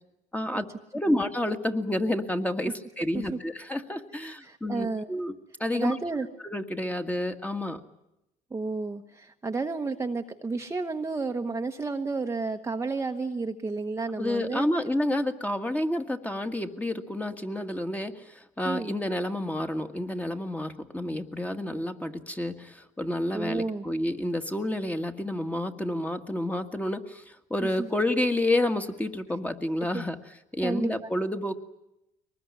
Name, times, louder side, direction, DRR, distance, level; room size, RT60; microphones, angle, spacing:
voice 1, 0.3-0.7 0.9-5.3 5.6-6.0 6.4-7.8 14.2-30.2 30.5-31.5, left 1 dB, 10° left, 6 dB, 1.7 m, -29 dB
voice 2, 4.2-5.1 5.7-6.3 8.5-14.7 18.6-19.0 23.3-23.8 27.6-27.9 29.9-30.0 30.6-31.1, right 3 dB, 15° right, 4 dB, 1.1 m, -31 dB
23.0 x 20.0 x 9.8 m, 0.88 s
cardioid pair, 110°, 17 cm